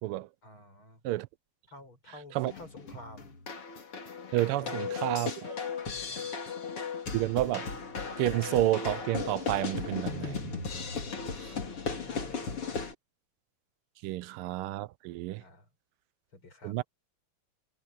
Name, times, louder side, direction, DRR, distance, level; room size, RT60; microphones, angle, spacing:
voice 1, 0.4-1.0 1.7-3.3 4.6-4.9 5.9-6.3 11.5-12.9 15.3-15.7 16.3-16.8, left 1 dB, 70° left, 8.2 m, -51 dB
sound 1, 2.4-12.9, left 5 dB, 85° left, 4.1 m, -36 dB
voice 2, 4.3-5.6 7.1-7.7 8.2-10.8 11.4-11.5 14.0-15.4 16.6-16.8, right 16 dB, 85° right, 1.5 m, -30 dB
omnidirectional pair, 2.4 m